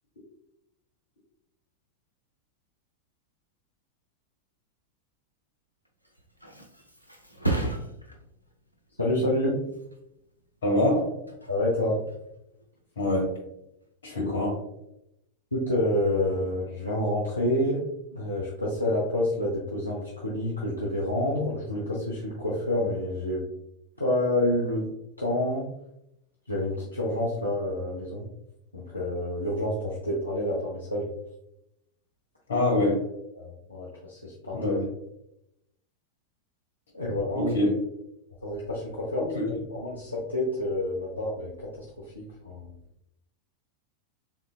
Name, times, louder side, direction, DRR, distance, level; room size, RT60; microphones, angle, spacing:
Thump thud, 5.9-13.3 13.7-14.2, right 2 dB, 90° right, 0.5 m, -37 dB
voice 1, 9.0-9.6 11.5-12.0 15.5-17.8 18.1-23.4 24.0-24.9 25.2-25.6 26.5-28.2 28.7-31.1 33.3-34.8 36.9-37.5 38.4-41.7 42.1-42.7, left 1 dB, 85° left, -5 dB, 0.7 m, -28 dB
voice 2, 10.6-11.1 13.0-13.4 14.0-14.6 32.5-33.1 34.5-34.9 37.3-37.9 39.2-39.5, left 1 dB, 65° left, -2 dB, 1.4 m, -25 dB
3.6 x 3.6 x 2.3 m, 0.82 s
figure-of-eight pair, 90°, 0 cm